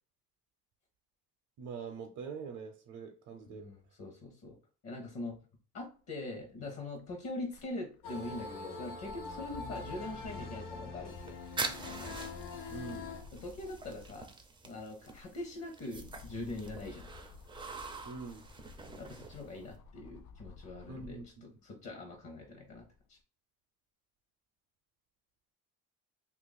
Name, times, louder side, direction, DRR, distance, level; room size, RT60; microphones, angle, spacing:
voice 1, 1.6-3.7 12.7-13.1 18.0-18.4 20.9-21.4, right 5 dB, 55° right, 3 dB, 0.6 m, -44 dB
voice 2, 3.5-4.6 4.8-5.4 5.7-11.3 13.3-14.3 14.6-17.0 18.9-23.2, left 2 dB, 45° left, 2 dB, 0.8 m, -43 dB
sound 1, 6.6-14.4 14.9-21.4 21.9-23.0, left 5 dB, 65° left, 0.5 m, -54 dB
sound 2, 8.0-13.2, left 3 dB, 85° left, 0.8 m, -43 dB
sound 3, 11.1-19.8, right 4 dB, 15° right, 0.4 m, -45 dB
2.8 x 2.5 x 4.0 m, 0.39 s
cardioid pair, 135°, 32 cm